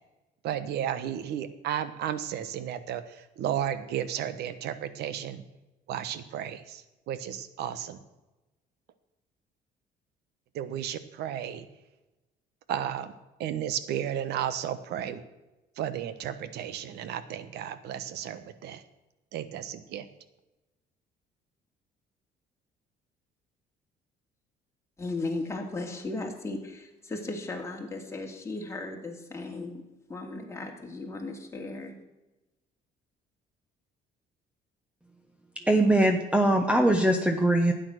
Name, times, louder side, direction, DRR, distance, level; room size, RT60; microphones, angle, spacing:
voice 1, 0.4-5.4 5.9-8.0 10.5-11.6 12.7-13.1 13.4-15.2 15.8-18.8 19.3-20.1, right 10 dB, 75° right, 13 dB, 1.1 m, -33 dB
voice 2, 25.0-29.8 30.1-31.9, left 2 dB, 15° left, 0 dB, 2.6 m, -36 dB
voice 3, 35.6-37.7, right 1 dB, 5° right, 5 dB, 1.0 m, -22 dB
12.0 x 9.2 x 6.3 m, 1.0 s
cardioid pair, 110°, 17 cm